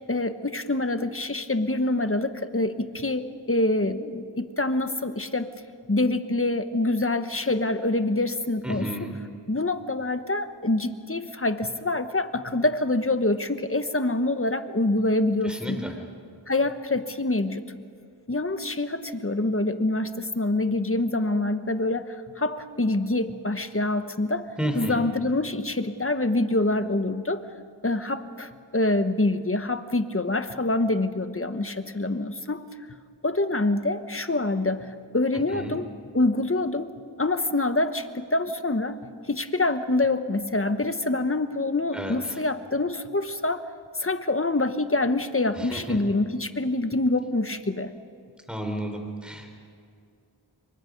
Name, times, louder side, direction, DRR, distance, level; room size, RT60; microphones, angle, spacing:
voice 1, 0.1-5.5 5.9-8.9 9.5-15.8 16.5-17.6 18.3-24.5 24.7-27.5 27.8-32.6 33.2-36.9 37.2-39.0 39.3-43.6 43.9-47.9, left 2 dB, 30° left, 10 dB, 1.2 m, -26 dB
voice 2, 8.6-9.2 15.4-15.9 24.6-25.0 35.5-35.7 41.9-42.4 45.6-46.0 48.5-49.5, right 1 dB, ahead, 3 dB, 4.0 m, -32 dB
26.5 x 23.5 x 5.4 m, 2.3 s
wide cardioid pair, 45°, 45 cm